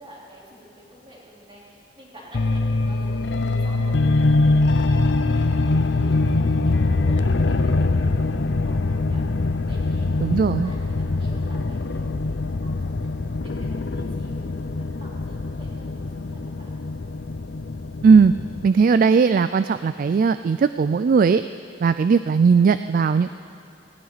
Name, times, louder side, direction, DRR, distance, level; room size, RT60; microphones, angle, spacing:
voice 1, 0.0-9.2 9.7-13.1 13.4-14.5 14.8-16.7, equal, 30° right, -5 dB, 3.9 m, -47 dB
sound 1, 2.3-18.7, left 2 dB, 70° left, 0.6 m, -23 dB
voice 2, 10.2-10.7 18.0-18.3 18.6-21.4 21.8-23.3, right 5 dB, 50° right, 12 dB, 0.3 m, -17 dB
18.5 x 16.5 x 4.1 m, 2.9 s
head